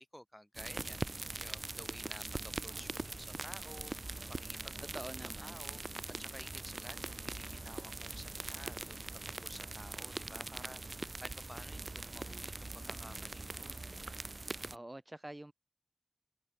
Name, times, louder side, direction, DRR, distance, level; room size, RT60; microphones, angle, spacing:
voice 1, 0.0-4.9 5.4-13.8, equal, 10° left, 7.1 m, -53 dB
sound 1, 0.5-14.8, right 2 dB, 85° right, 0.8 m, -42 dB
voice 2, 4.9-5.6 14.7-15.5, right 1 dB, 40° right, 3.9 m, -46 dB
wide cardioid pair, 50°, 0 cm